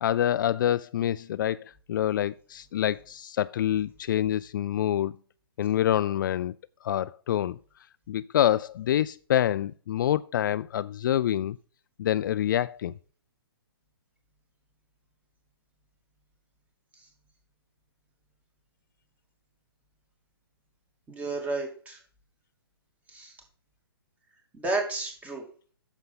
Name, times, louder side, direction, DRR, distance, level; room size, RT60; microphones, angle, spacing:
voice 1, 0.0-5.1 5.6-6.5 6.8-7.6 8.1-11.6 12.0-12.9, left 11 dB, 55° left, 0.4 m, -26 dB
voice 2, 21.1-22.0 23.1-23.3 24.5-25.4, right 2 dB, 10° right, 2.6 m, -31 dB
9.5 x 7.0 x 3.8 m
hypercardioid pair, 140°, 13 cm